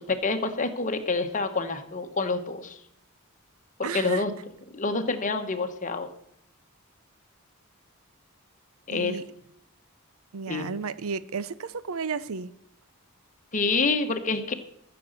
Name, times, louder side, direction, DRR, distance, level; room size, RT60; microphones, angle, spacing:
voice 1, 0.0-2.8 3.8-4.3 4.7-6.1 8.9-9.2 10.5-10.7 13.5-14.5, left 3 dB, 35° left, 7 dB, 1.2 m, -27 dB
voice 2, 3.8-4.2 8.9-9.2 10.3-12.5, right 5 dB, 70° right, 16 dB, 0.6 m, -33 dB
14.0 x 7.0 x 6.5 m, 0.71 s
head